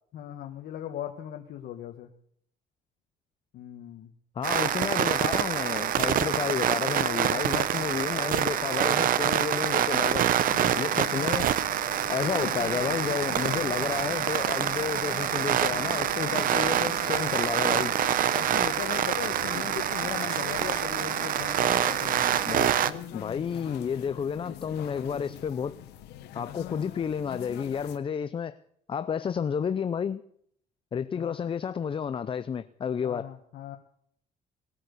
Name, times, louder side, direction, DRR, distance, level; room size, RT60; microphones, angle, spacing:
voice 1, 0.1-2.1 3.5-4.1 7.3-7.9 9.1-9.5 16.2-16.5 18.3-22.4 31.1-31.3 33.0-33.8, left 10 dB, 65° left, 1.4 m, -39 dB
voice 2, 4.4-10.2 10.8-11.5 12.1-17.9 22.4-22.7 23.1-25.8 26.3-28.6 28.9-30.2 30.9-33.3, left 7 dB, 30° left, 0.6 m, -31 dB
sound 1, 4.4-22.9, right 10 dB, 55° right, 0.8 m, -26 dB
sound 2, 10.5-28.0, left 12 dB, 85° left, 1.3 m, -43 dB
19.5 x 8.8 x 6.9 m
cardioid pair, 110°, 17 cm